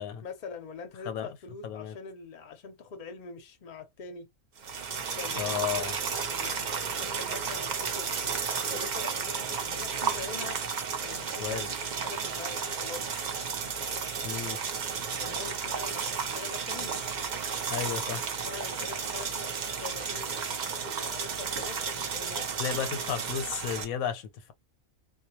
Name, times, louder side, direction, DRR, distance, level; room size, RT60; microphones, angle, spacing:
voice 1, 0.2-4.3 5.2-10.6 11.0-13.1 15.1-17.0 18.4-22.5, left 5 dB, 45° left, 0.6 m, -44 dB
voice 2, 1.6-1.9 5.3-5.9 11.4-11.7 14.2-14.6 17.7-18.2 22.6-24.5, left 8 dB, 85° left, 1.0 m, -33 dB
sound 1, 4.6-23.8, right 6 dB, 70° right, 0.4 m, -33 dB
2.2 x 2.2 x 2.8 m
omnidirectional pair, 1.5 m